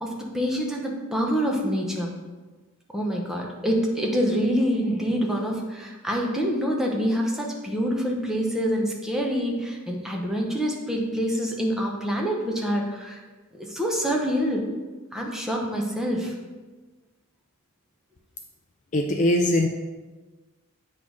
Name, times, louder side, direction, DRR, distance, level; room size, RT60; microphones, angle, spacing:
voice 1, 0.0-2.1 2.9-13.2 13.5-14.6 15.1-16.3, equal, ahead, -1 dB, 0.9 m, -26 dB
voice 2, 18.9-19.7, left 1 dB, 35° left, 3 dB, 0.4 m, -21 dB
8.3 x 3.2 x 5.3 m, 1.3 s
head